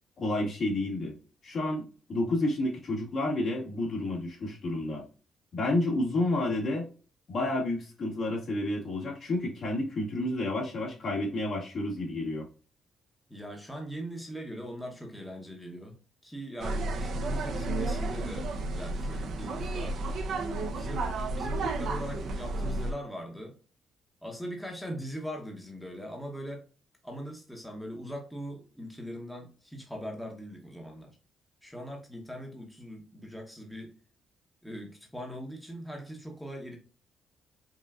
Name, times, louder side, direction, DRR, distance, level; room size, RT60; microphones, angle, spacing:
voice 1, 0.2-1.2 1.4-5.0 5.5-6.9 7.3-12.5, left 2 dB, 55° left, -1 dB, 1.7 m, -30 dB
voice 2, 13.3-16.0 16.2-20.0 20.7-23.6 24.2-26.6 27.0-31.2 31.6-34.0 34.6-36.8, equal, 5° left, 1 dB, 0.9 m, -41 dB
sound 1, 16.6-22.9, right 2 dB, 65° right, 0.6 m, -32 dB
5.4 x 2.5 x 2.3 m, 0.37 s
cardioid pair, 90°, 0 cm